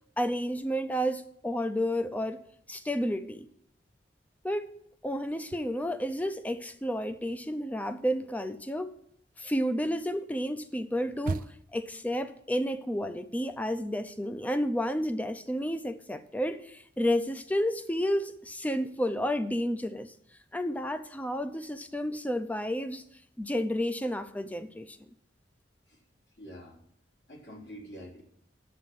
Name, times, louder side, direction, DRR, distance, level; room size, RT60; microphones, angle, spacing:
voice 1, 0.2-2.4 2.7-3.5 4.4-4.8 5.0-8.9 9.4-11.4 11.7-20.1 20.5-23.0 23.4-25.0, equal, 10° left, 0.6 m, -31 dB
sound 1, 5.3-6.5 6.8-11.9, right 3 dB, 50° right, 0.4 m, -41 dB
voice 2, 25.9-26.8 27.3-28.2, equal, 75° left, 3.3 m, -47 dB
9.4 x 7.4 x 7.2 m
head